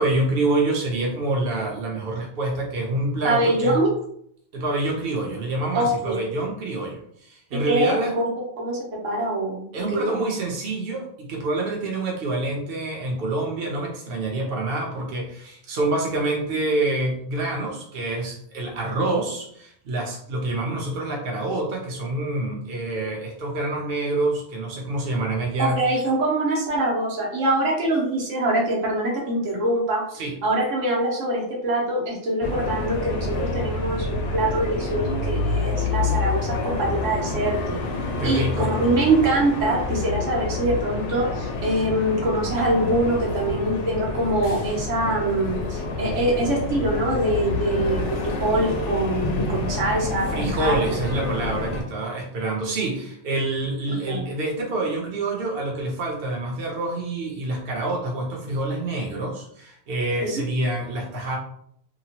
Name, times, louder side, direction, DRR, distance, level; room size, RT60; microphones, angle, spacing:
voice 1, 0.0-3.8 4.5-8.1 9.7-25.8 30.2-30.3 38.2-38.7 50.3-61.4, right 2 dB, 55° right, 0 dB, 0.9 m, -27 dB
voice 2, 3.2-3.9 5.7-6.2 7.5-8.2 8.6-8.8 9.0-9.6 9.9-10.2 25.6-30.0 30.4-37.8 38.2-50.7 54.1-54.3 60.2-60.3, right 1 dB, 85° right, -2 dB, 1.2 m, -24 dB
sound 1, 32.4-51.8, left 3 dB, 75° left, 0.9 m, -28 dB
2.9 x 2.2 x 2.8 m, 0.67 s
omnidirectional pair, 1.2 m